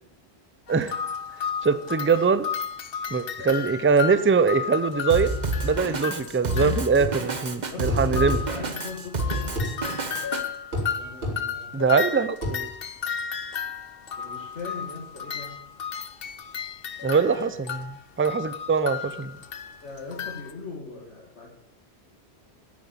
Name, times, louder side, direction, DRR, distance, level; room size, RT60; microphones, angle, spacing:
sound 1, 0.7-7.1 7.3-7.4 7.7-7.8 8.0-20.5, left 7 dB, 60° left, 1.0 m, -34 dB
voice 1, 1.6-2.5 3.1-5.4 5.6-8.4 11.7-12.7 17.0-19.3, right 5 dB, 20° right, 13 dB, 0.4 m, -23 dB
Drum kit, 5.1-10.4, right 1 dB, 40° right, 1.2 m, -29 dB
sound 2, 7.0-7.2 7.9-8.4 9.6-9.7 10.7-10.9 11.2-11.4 12.4-12.6, left 1 dB, 70° right, 3.4 m, -28 dB
voice 2, 7.7-9.9 11.0-11.9 14.2-15.5 17.4-17.5 19.8-21.5, left 3 dB, 85° left, -3 dB, 2.4 m, -39 dB
9.7 x 9.4 x 8.6 m, 0.72 s
omnidirectional pair, 1.2 m